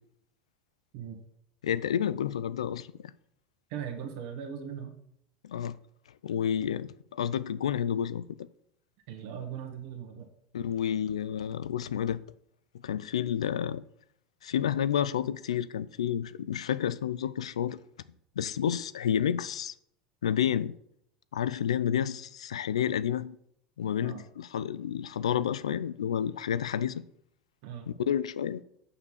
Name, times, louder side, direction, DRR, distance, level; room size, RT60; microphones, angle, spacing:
voice 1, 1.6-2.9 5.4-5.8 6.2-8.3 10.5-12.2 12.8-13.8 14.4-17.8 18.4-19.7 20.2-20.7 21.3-23.4 23.8-27.0 28.1-28.6, left 9 dB, 90° left, 0.4 m, -30 dB
voice 2, 3.7-5.0 9.1-10.3 24.0-24.2 27.6-27.9, right 8 dB, 65° right, 1.7 m, -39 dB
6.9 x 5.7 x 6.4 m
hypercardioid pair, 90°, 3 cm